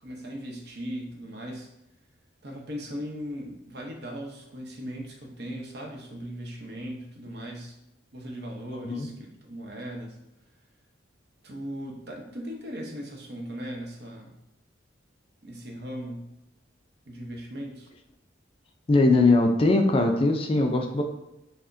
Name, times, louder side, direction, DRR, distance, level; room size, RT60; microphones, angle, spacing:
voice 1, 0.0-1.7 2.4-7.8 8.1-10.2 11.4-14.4 15.4-16.3 17.1-17.9, equal, 60° right, 0 dB, 0.7 m, -38 dB
voice 2, 18.9-21.0, left 2 dB, 30° left, 4 dB, 0.3 m, -21 dB
5.7 x 2.1 x 2.6 m, 0.88 s
head